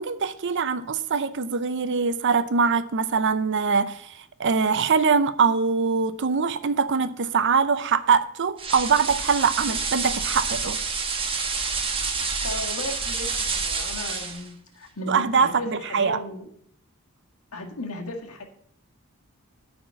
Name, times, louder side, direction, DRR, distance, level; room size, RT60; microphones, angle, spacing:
voice 1, 0.0-10.8 15.1-16.2, right 5 dB, 55° right, 0.6 m, -23 dB
sound 1, 8.6-14.5, right 4 dB, 25° right, 1.1 m, -28 dB
voice 2, 12.4-16.5 17.5-18.4, left 1 dB, 80° left, 1.9 m, -35 dB
10.0 x 4.3 x 7.7 m
head